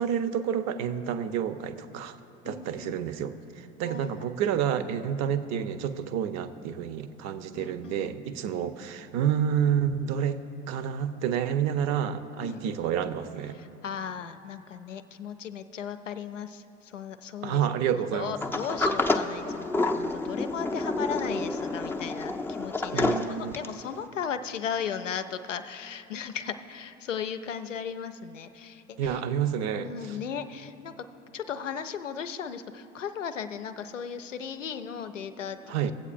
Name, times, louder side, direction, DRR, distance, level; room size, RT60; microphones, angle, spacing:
voice 1, 0.0-2.2 2.4-13.6 17.4-18.3 22.9-23.6 29.0-29.9 35.7-35.9, right 8 dB, 45° right, 11 dB, 0.6 m, -29 dB
voice 2, 2.4-2.9 3.8-4.3 7.5-8.2 8.5-8.7 12.4-12.6 13.5-17.6 17.9-29.2 29.7-30.9 31.3-35.8, left 7 dB, 90° left, 10 dB, 0.5 m, -36 dB
Sliding door, 18.4-23.8, left 2 dB, 5° left, 0.4 m, -29 dB
20.5 x 8.1 x 2.5 m, 2.9 s
figure-of-eight pair, 65°, 36 cm